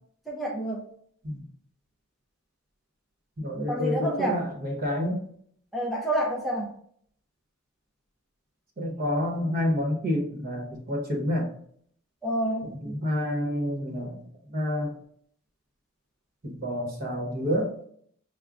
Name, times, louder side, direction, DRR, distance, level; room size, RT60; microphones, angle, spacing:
voice 1, 0.3-0.8 3.7-4.4 5.7-6.7 12.2-12.7, right 1 dB, ahead, -3 dB, 0.5 m, -28 dB
voice 2, 3.4-5.2 8.8-11.5 12.6-14.9 16.4-17.7, left 1 dB, 45° right, 0 dB, 1.0 m, -29 dB
6.1 x 2.2 x 2.4 m, 0.63 s
head